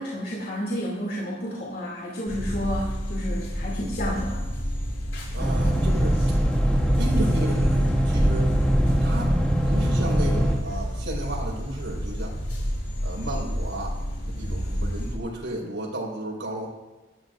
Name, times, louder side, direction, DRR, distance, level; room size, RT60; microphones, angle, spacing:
voice 1, 0.0-4.4, equal, 50° left, -4 dB, 2.9 m, -31 dB
sound 1, 2.3-15.2, equal, 85° left, 6.1 m, -30 dB
voice 2, 5.3-6.2 7.0-8.5 9.0-9.4 9.6-12.3 13.0-14.0 14.4-16.7, right 1 dB, 85° right, -3 dB, 5.2 m, -33 dB
sound 2, 5.4-10.5, equal, 5° left, 2.1 m, -22 dB
23.0 x 14.0 x 2.7 m, 1.1 s
head